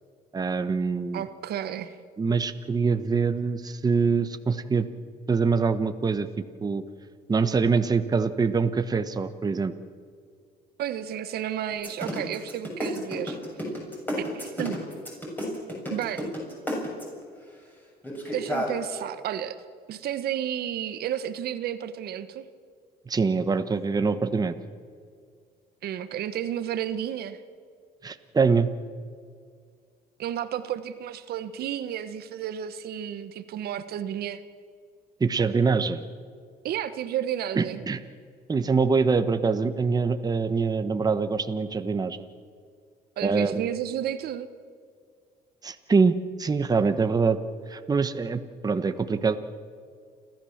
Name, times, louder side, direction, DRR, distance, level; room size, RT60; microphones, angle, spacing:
voice 1, 0.3-1.2 2.2-4.9 5.3-6.3 6.6-6.8 7.3-9.7 23.1-24.5 28.0-28.7 35.2-36.0 37.6-38.0 38.5-42.2 43.2-43.7 45.6-47.4 47.7-49.4, right 4 dB, 25° right, 9 dB, 1.1 m, -24 dB
voice 2, 1.1-2.0 10.8-13.4 14.2-14.8 15.9-16.3 18.3-19.6 19.9-22.5 25.8-27.4 30.2-34.4 36.6-37.8 43.2-44.5, right 10 dB, 70° right, 12 dB, 1.2 m, -32 dB
sound 1, 11.7-17.2 18.0-18.7, equal, 10° left, 6.8 m, -31 dB
29.5 x 13.5 x 7.3 m, 2.1 s
cardioid pair, 110°, 17 cm